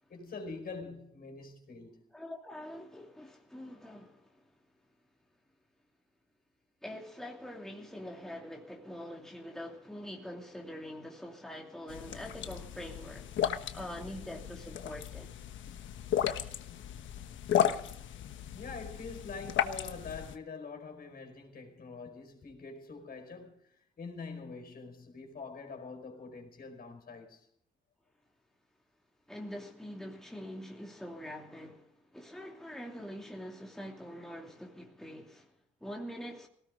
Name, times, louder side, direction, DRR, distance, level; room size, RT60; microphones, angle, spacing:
voice 1, 0.1-2.0 16.5-16.6 18.5-27.4, left 4 dB, 50° left, 5.1 m, -45 dB
voice 2, 2.1-4.6 6.8-15.3 29.3-36.5, equal, ahead, 2.7 m, -44 dB
sound 1, 11.9-20.4, left 10 dB, 70° left, 1.3 m, -35 dB
19.0 x 17.5 x 3.8 m
cardioid pair, 90°, 20 cm